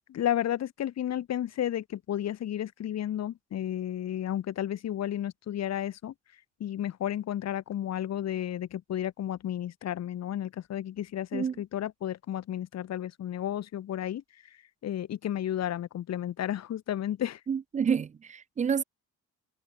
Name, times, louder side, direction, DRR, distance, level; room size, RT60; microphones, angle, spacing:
voice 1, 0.1-6.1 6.6-14.2 14.8-17.4, left 11 dB, 55° left, 3.7 m, -32 dB
voice 2, 17.5-18.8, right 7 dB, 25° right, 0.5 m, -28 dB
cardioid pair, 150°, 31 cm